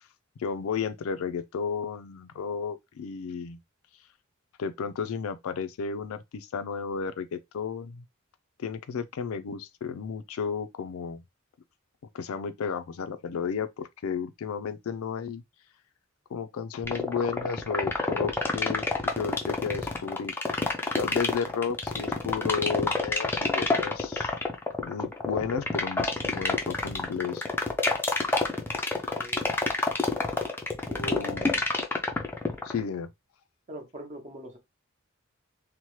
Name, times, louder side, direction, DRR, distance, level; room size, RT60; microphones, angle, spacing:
voice 1, 0.4-3.6 4.6-8.0 8.6-11.2 12.1-15.4 16.3-18.9 19.1-20.3 21.0-24.4 24.8-27.5 30.9-31.6 32.6-33.1, left 6 dB, 80° left, 0.4 m, -33 dB
sound 1, 16.8-32.8, left 2 dB, 10° left, 0.4 m, -27 dB
voice 2, 28.9-29.4 30.9-31.4 33.7-34.6, right 1 dB, 35° right, 0.8 m, -42 dB
2.8 x 2.1 x 3.0 m
head